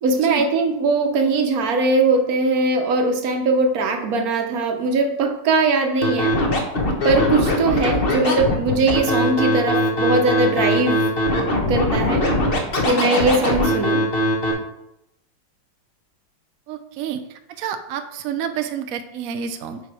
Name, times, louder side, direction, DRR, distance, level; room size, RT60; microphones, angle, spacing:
voice 1, 0.0-6.4 7.0-11.1 11.7-12.3 12.8-14.0, right 3 dB, 55° right, 4 dB, 1.3 m, -20 dB
Scratching (performance technique), 6.0-14.5, left 1 dB, 40° left, 1.0 m, -21 dB
voice 2, 16.7-19.8, right 8 dB, 80° right, 8 dB, 0.7 m, -29 dB
6.8 x 4.9 x 4.7 m, 0.83 s
omnidirectional pair, 2.1 m